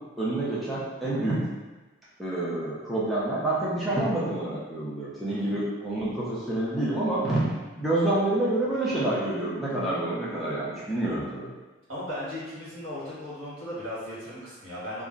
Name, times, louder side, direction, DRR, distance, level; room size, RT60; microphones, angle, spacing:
voice 1, 0.2-1.4 2.2-7.4 7.8-11.5, right 1 dB, ahead, -9 dB, 0.4 m, -28 dB
voice 2, 5.3-5.6 11.9-15.0, left 1 dB, 85° right, -8 dB, 1.3 m, -37 dB
2.4 x 2.0 x 3.6 m, 1.2 s
head